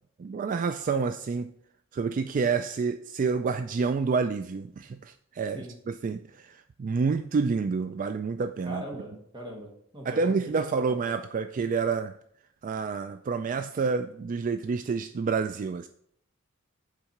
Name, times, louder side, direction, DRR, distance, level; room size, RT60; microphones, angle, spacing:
voice 1, 0.2-1.5 1.9-8.8 10.0-12.2 12.6-15.9, right 5 dB, 40° right, 0.3 m, -28 dB
voice 2, 8.6-10.2 10.6-10.7, right 1 dB, 25° right, 1.5 m, -40 dB
7.2 x 4.8 x 6.5 m
head